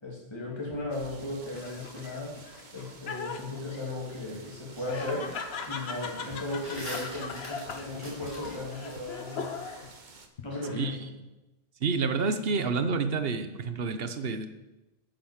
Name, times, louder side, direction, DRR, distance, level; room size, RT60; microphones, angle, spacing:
voice 1, 0.0-2.3 2.7-5.3 5.7-9.6 10.4-11.0, left 2 dB, 25° left, -3 dB, 2.6 m, -36 dB
sound 1, 0.7-2.0 4.2-4.3 4.7-5.5 5.8-9.0, left 1 dB, 10° right, 4.9 m, -44 dB
sound 2, 0.9-10.3, right 4 dB, 50° right, 1.1 m, -52 dB
Laughter, 1.5-10.0 10.4-11.1, left 5 dB, 80° left, 1.2 m, -40 dB
voice 2, 11.8-14.5, right 4 dB, 70° right, 10 dB, 1.1 m, -29 dB
9.7 x 7.7 x 7.3 m, 1.1 s
omnidirectional pair, 1.0 m